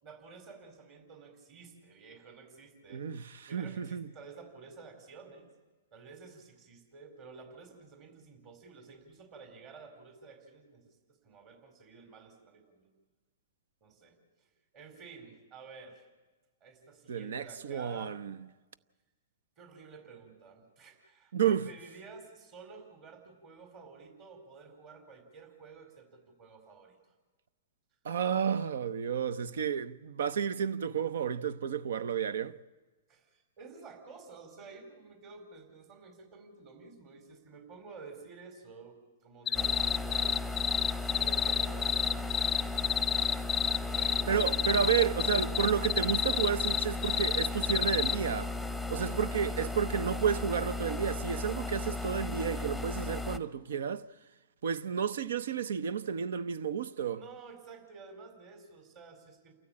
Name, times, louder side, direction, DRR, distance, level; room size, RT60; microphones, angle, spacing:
voice 1, 0.0-3.2 3.5-5.5 5.9-12.9 13.8-16.1 16.6-18.2 19.6-27.0 33.1-40.4 41.0-43.3 43.8-45.6 49.0-49.4 57.1-59.5, right 4 dB, 40° right, 4.2 m, -51 dB
voice 2, 2.9-4.1 17.1-18.4 21.3-21.7 28.0-32.6 44.3-48.5 48.9-54.0 54.6-57.2, right 7 dB, 75° right, 0.8 m, -31 dB
sound 1, 39.5-48.2, left 9 dB, 15° left, 0.6 m, -29 dB
sound 2, 39.5-53.4, left 2 dB, 5° right, 0.9 m, -36 dB
28.5 x 14.0 x 8.7 m
hypercardioid pair, 135°, 0 cm